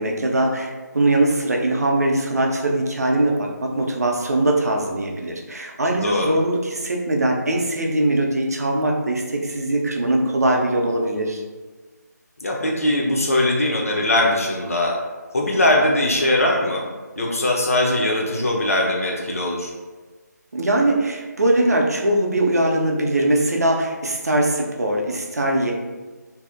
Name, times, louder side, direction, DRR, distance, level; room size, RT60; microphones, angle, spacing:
voice 1, 0.0-11.4 20.5-25.7, right 1 dB, 60° right, 1 dB, 0.4 m, -21 dB
voice 2, 6.0-6.3 12.4-15.0 15.3-16.9 17.2-19.7, left 1 dB, 50° left, -1 dB, 0.4 m, -20 dB
2.6 x 2.0 x 2.4 m, 1.3 s
figure-of-eight pair, 155°, 10 cm